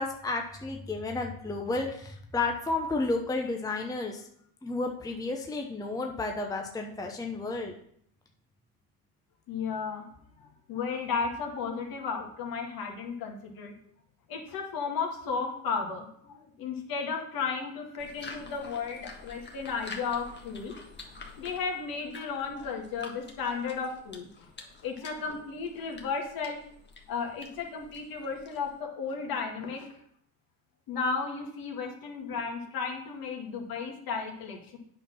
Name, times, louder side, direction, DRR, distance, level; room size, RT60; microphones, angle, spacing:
voice 1, 0.0-4.2 4.6-7.7, left 3 dB, 10° left, 2 dB, 0.9 m, -32 dB
voice 2, 9.5-10.0 10.4-13.7 14.3-20.7 21.4-24.5 24.8-26.6 27.1-29.9 30.9-34.8, left 5 dB, 55° left, 2 dB, 2.1 m, -34 dB
sound 1, 18.0-28.8, left 3 dB, 25° left, 1.5 m, -48 dB
8.9 x 4.4 x 5.7 m, 0.67 s
supercardioid pair, 95°, 43 cm